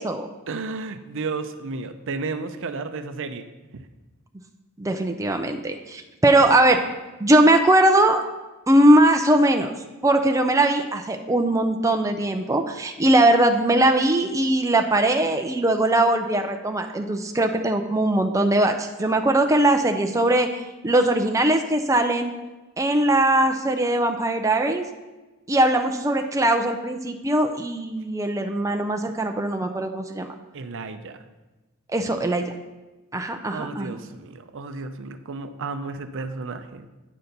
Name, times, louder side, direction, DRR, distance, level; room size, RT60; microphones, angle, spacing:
voice 1, 0.5-3.5 3.7-3.9 30.5-31.2 33.5-36.9, right 4 dB, 60° right, 9 dB, 0.6 m, -33 dB
voice 2, 4.8-6.8 7.2-8.2 8.7-9.7 10.0-22.3 22.8-24.9 25.5-30.3 31.9-32.5 33.1-34.0, right 1 dB, 15° right, 4 dB, 0.5 m, -20 dB
9.3 x 4.3 x 6.6 m, 1.1 s
head